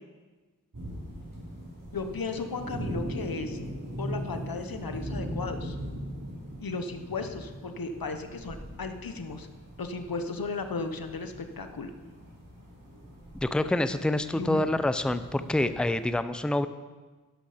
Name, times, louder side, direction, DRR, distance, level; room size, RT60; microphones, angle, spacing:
sound 1, 0.7-16.1, equal, 65° right, 4.5 m, -40 dB
voice 1, 1.9-3.6 4.0-5.8 6.6-9.5 9.8-11.9 14.3-14.6, left 4 dB, 90° left, 7 dB, 1.0 m, -35 dB
voice 2, 13.4-16.7, left 1 dB, 5° left, 12 dB, 0.6 m, -27 dB
12.5 x 11.0 x 5.0 m, 1.3 s
wide cardioid pair, 60°, 34 cm